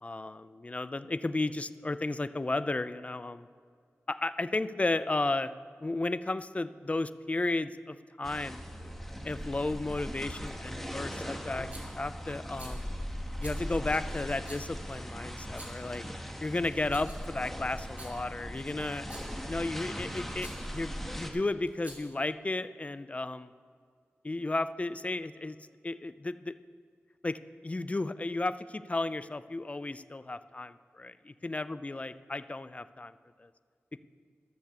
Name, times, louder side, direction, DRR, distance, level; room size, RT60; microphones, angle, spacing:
voice 1, 0.0-3.5 4.1-5.5 5.8-8.9 9.2-12.9 13.4-16.0 16.4-19.1 19.5-23.5 24.2-25.6 25.8-26.5 27.2-33.1 33.4-33.5, left 2 dB, 30° left, 13 dB, 0.4 m, -33 dB
sound 1, 8.2-21.3, equal, 5° left, 1.3 m, -39 dB
Rattle, 11.7-12.0 12.5-12.8 13.4-13.6 14.4-14.7 15.4-15.9 16.6-17.3 17.8-18.1 19.0-19.4 20.4-20.6 21.7-22.2, right 1 dB, 35° right, 2.6 m, -49 dB
13.5 x 6.7 x 6.7 m, 2.1 s
wide cardioid pair, 65°, 5 cm